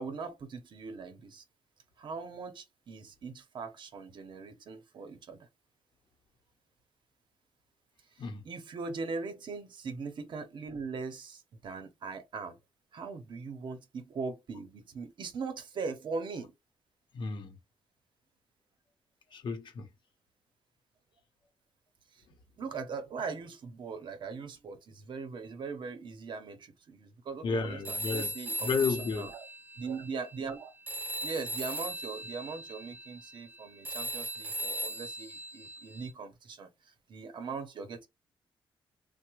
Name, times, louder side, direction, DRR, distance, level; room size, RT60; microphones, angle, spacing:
voice 1, 0.0-1.4 2.0-5.5 8.4-12.6 12.9-16.5 22.1-22.2 22.6-29.4 29.8-30.7 31.2-38.1, right 4 dB, 60° right, 0.7 m, -40 dB
voice 2, 17.1-17.6 19.3-19.9 22.3-22.4 27.4-28.3 28.6-29.3, left 5 dB, 60° left, 0.7 m, -32 dB
Telephone, 27.8-30.6 30.9-36.1, right 1 dB, 20° right, 0.6 m, -38 dB
3.3 x 2.1 x 3.0 m
cardioid pair, 120°, 9 cm